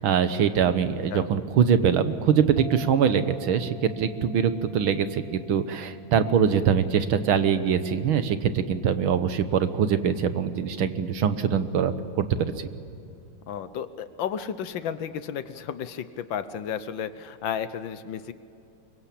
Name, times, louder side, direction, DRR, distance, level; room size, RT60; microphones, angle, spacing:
voice 1, 0.0-12.7, right 7 dB, 75° right, 11 dB, 1.9 m, -23 dB
sound 1, 2.6-9.6, equal, 50° left, 4.2 m, -50 dB
voice 2, 13.5-18.3, left 8 dB, 70° left, 12 dB, 1.6 m, -33 dB
24.5 x 23.0 x 8.5 m, 2.7 s
omnidirectional pair, 2.3 m